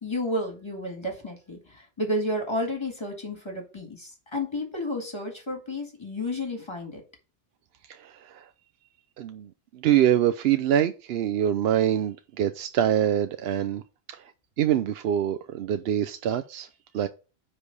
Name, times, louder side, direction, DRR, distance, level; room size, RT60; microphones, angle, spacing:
voice 1, 0.0-7.0, left 1 dB, 25° left, 2.0 m, -31 dB
voice 2, 7.9-8.5 9.2-13.8 14.1-14.3 14.6-16.7 16.9-17.1, right 10 dB, 75° right, 0.8 m, -25 dB
9.6 x 3.4 x 5.3 m
omnidirectional pair, 1.0 m